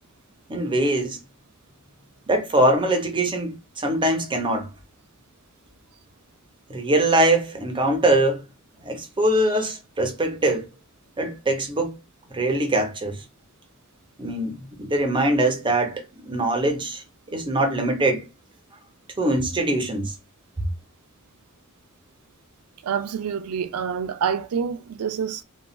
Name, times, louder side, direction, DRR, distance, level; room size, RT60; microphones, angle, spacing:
voice 1, 0.5-1.2 2.3-4.7 6.7-8.4 8.8-10.7 11.2-11.9 12.3-13.1 14.2-17.0 17.3-18.2 19.2-20.1 20.6-20.7, right 1 dB, 20° right, 0.7 m, -22 dB
voice 2, 9.3-9.6 22.8-25.4, right 7 dB, 90° right, 0.4 m, -27 dB
3.0 x 2.4 x 2.2 m
head